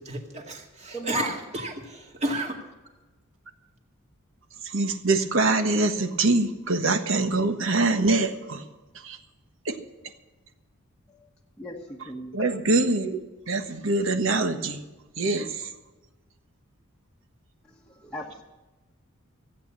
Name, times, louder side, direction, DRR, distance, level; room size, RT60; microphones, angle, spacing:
voice 1, 0.0-2.6, right 1 dB, 30° right, 2 dB, 2.1 m, -32 dB
voice 2, 0.9-1.3 11.6-12.6 17.7-18.4, left 1 dB, 5° left, -3 dB, 1.3 m, -37 dB
voice 3, 4.6-8.6 9.0-9.2 9.6-9.7 12.3-13.2 13.5-14.8 15.2-15.7, right 2 dB, 65° right, 7 dB, 1.3 m, -24 dB
15.5 x 8.7 x 7.3 m, 1.1 s
head